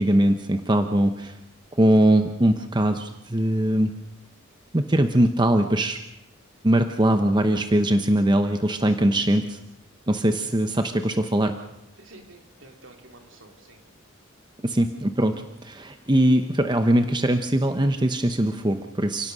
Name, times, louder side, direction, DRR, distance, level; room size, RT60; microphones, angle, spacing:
voice 1, 0.0-1.3 1.8-3.9 4.7-6.0 6.6-9.6 10.1-11.5 14.6-15.3 15.6-19.3, right 1 dB, 20° right, 7 dB, 0.9 m, -21 dB
voice 2, 12.0-13.8 14.7-14.8, right 2 dB, 65° right, 4 dB, 3.3 m, -50 dB
29.5 x 17.5 x 6.3 m, 0.86 s
head